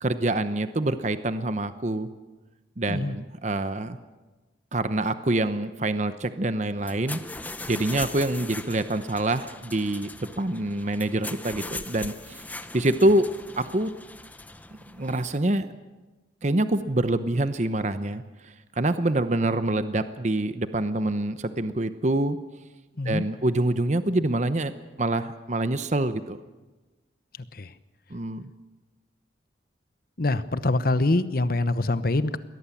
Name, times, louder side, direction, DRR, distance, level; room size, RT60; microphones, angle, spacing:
voice 1, 0.0-2.1 2.8-4.0 4.7-7.2 7.7-10.1 10.4-12.4 12.7-13.3 13.6-13.9 14.9-15.7 16.4-22.4 23.0-24.7 25.0-26.4 28.1-28.5, right 1 dB, 40° right, 11 dB, 0.8 m, -26 dB
sound 1, 6.8-15.4, left 2 dB, 10° left, 0.8 m, -40 dB
voice 2, 30.2-32.4, left 2 dB, 50° left, 13 dB, 0.9 m, -24 dB
21.5 x 17.5 x 8.5 m, 1.2 s
head